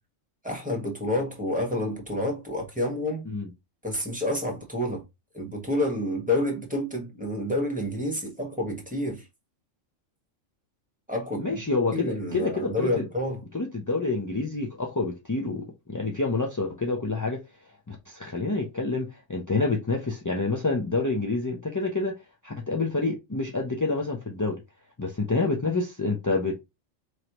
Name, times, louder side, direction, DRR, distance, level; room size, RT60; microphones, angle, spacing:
voice 1, 0.4-3.2 3.8-5.0 5.3-9.2 11.1-11.6 11.9-13.4, left 1 dB, 5° right, 1.4 m, -29 dB
voice 2, 11.4-13.0 13.5-17.4 17.9-22.2 22.4-24.6 25.0-26.6, left 3 dB, 25° left, 0.4 m, -28 dB
4.7 x 3.2 x 3.0 m
omnidirectional pair, 1.3 m